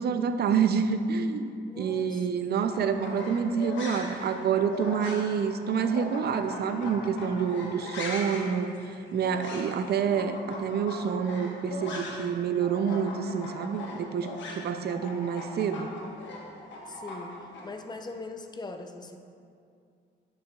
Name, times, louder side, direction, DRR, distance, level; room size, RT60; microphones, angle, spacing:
voice 1, 0.0-8.8 9.1-15.9, right 6 dB, 55° right, 9 dB, 0.5 m, -28 dB
voice 2, 1.7-2.3 15.0-15.1 16.9-19.2, left 3 dB, 20° left, 6 dB, 0.6 m, -41 dB
sound 1, 2.6-12.3 12.6-17.6, left 2 dB, 70° left, 1.2 m, -39 dB
10.0 x 6.5 x 2.4 m, 2.4 s
cardioid pair, 90°, 20 cm